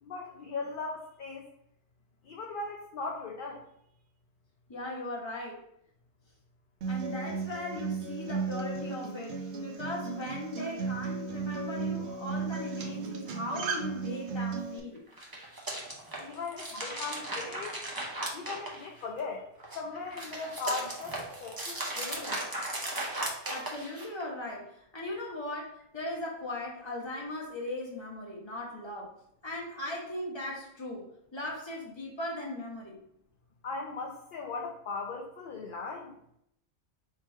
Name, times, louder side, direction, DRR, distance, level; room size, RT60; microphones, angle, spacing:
voice 1, 0.0-1.5 2.2-3.7 16.2-17.8 18.3-19.5 19.7-22.4 33.6-36.2, left 4 dB, 60° left, 1 dB, 0.6 m, -38 dB
voice 2, 4.7-5.7 6.8-15.0 16.7-16.8 23.5-29.1 29.4-33.0, left 1 dB, 25° left, -3 dB, 1.1 m, -38 dB
Acoustic guitar, 6.8-14.8, right 4 dB, 75° right, 0.9 m, -35 dB
sound 1, 15.1-19.2 19.6-24.2, right 1 dB, 20° right, 0.7 m, -37 dB
3.7 x 3.0 x 4.4 m, 0.75 s
omnidirectional pair, 1.2 m